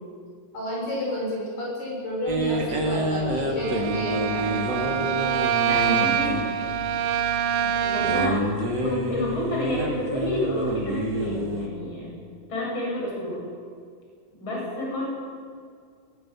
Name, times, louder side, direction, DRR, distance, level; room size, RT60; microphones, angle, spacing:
voice 1, 0.5-5.1 7.6-8.1, left 1 dB, 70° left, -4 dB, 9.2 m, -31 dB
sound 1, 2.3-11.7, equal, 30° right, 2.7 m, -29 dB
Bowed string instrument, 3.6-8.6, right 8 dB, 65° right, 2.6 m, -25 dB
voice 2, 5.6-6.5 7.9-8.4 8.8-12.2 12.5-13.5 14.3-15.0, left 1 dB, 30° left, -3 dB, 8.7 m, -29 dB
21.5 x 20.0 x 8.4 m, 2.1 s
omnidirectional pair, 4.7 m